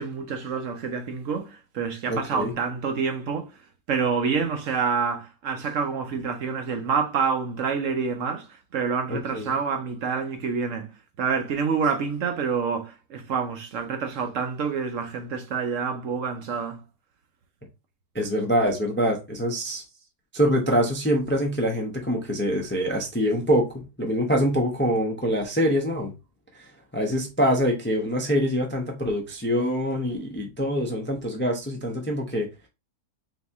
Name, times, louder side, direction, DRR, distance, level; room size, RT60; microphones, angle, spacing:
voice 1, 0.0-3.5 3.9-8.5 8.7-10.9 11.2-16.8, right 5 dB, 65° right, 1.0 m, -27 dB
voice 2, 2.1-2.5 9.1-9.5 18.1-19.8 20.3-23.7 24.0-26.1 26.5-32.5, equal, 15° left, 0.4 m, -25 dB
4.0 x 2.8 x 3.4 m
omnidirectional pair, 1.6 m